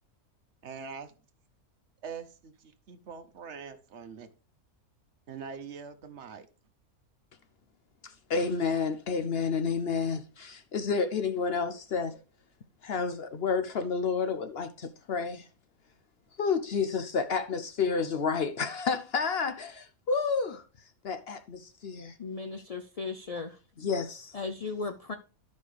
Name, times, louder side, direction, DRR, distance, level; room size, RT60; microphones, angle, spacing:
voice 1, 0.6-1.1 2.0-4.3 5.3-6.5, right 6 dB, 60° right, 1.0 m, -43 dB
voice 2, 8.0-12.2 12.8-15.5 16.4-20.6 21.0-22.2 23.8-24.3, left 5 dB, 60° left, 0.7 m, -30 dB
voice 3, 22.2-23.6 24.3-25.1, left 4 dB, 75° left, 0.3 m, -36 dB
12.0 x 5.3 x 3.2 m
omnidirectional pair, 1.5 m